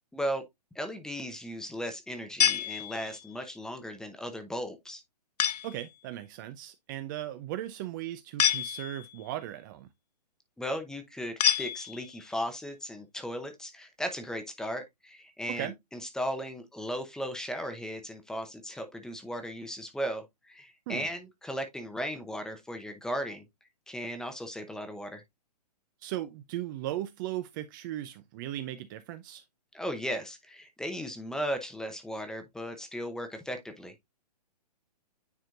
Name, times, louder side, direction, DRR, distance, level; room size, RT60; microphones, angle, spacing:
voice 1, 0.1-0.4 0.7-5.0 10.6-23.4 23.9-25.2 29.7-33.9, equal, 5° left, 0.8 m, -36 dB
sound 1, 2.4-3.3 5.4-5.9 8.4-9.2 11.4-12.3, left 9 dB, 70° left, 0.6 m, -28 dB
voice 2, 5.6-9.9 15.5-15.7 20.9-21.1 26.0-29.4, right 13 dB, 30° right, 0.5 m, -37 dB
9.4 x 4.3 x 2.5 m
hypercardioid pair, 140°, 21 cm